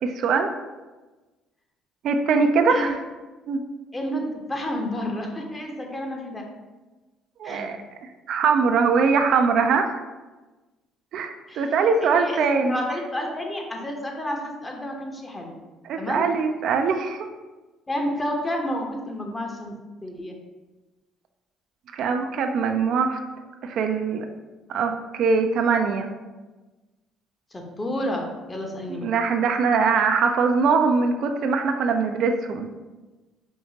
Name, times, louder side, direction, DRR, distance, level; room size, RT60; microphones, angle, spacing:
voice 1, 0.0-0.5 2.0-3.0 3.5-3.6 7.4-9.9 11.1-12.8 15.8-17.3 21.9-23.2 23.6-24.3 24.7-26.1 29.0-32.7, right 5 dB, 65° right, 5 dB, 0.3 m, -22 dB
voice 2, 3.9-6.4 7.4-7.7 11.5-11.7 12.0-15.5 16.0-16.3 17.9-19.7 20.0-20.4 27.5-29.1, equal, 20° left, 1 dB, 0.8 m, -30 dB
4.5 x 2.7 x 2.8 m, 1.2 s
hypercardioid pair, 60°, 0 cm